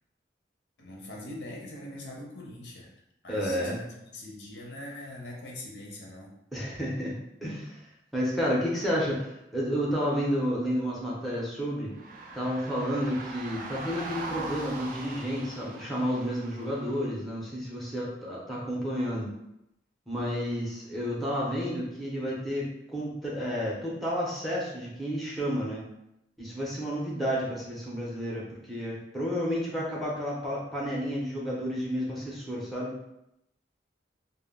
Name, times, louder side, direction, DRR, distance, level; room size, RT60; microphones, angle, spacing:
voice 1, 0.8-2.9 3.2-3.8 4.1-6.3, left 1 dB, 75° left, -2 dB, 0.6 m, -42 dB
voice 2, 3.3-3.8 6.5-7.1 7.4-7.8 8.1-11.9 12.3-19.3 20.1-25.8 26.4-33.0, equal, ahead, -5 dB, 0.6 m, -31 dB
sound 1, 11.9-17.1, right 2 dB, 45° right, 0.4 m, -41 dB
2.2 x 2.0 x 3.5 m, 0.83 s
head